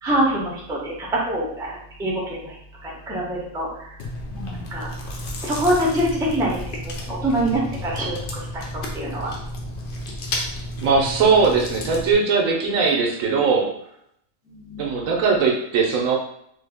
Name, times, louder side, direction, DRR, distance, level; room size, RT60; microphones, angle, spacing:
voice 1, 0.0-2.5 2.8-4.0 4.3-4.9 5.4-9.3 14.5-14.9, right 1 dB, 5° right, -5 dB, 0.5 m, -25 dB
Chewing mastication, 4.0-12.1, left 1 dB, 60° left, 0.5 m, -32 dB
voice 2, 10.7-13.7 14.8-16.2, right 5 dB, 70° right, 0 dB, 1.0 m, -20 dB
3.3 x 2.3 x 3.4 m, 0.72 s
omnidirectional pair, 1.5 m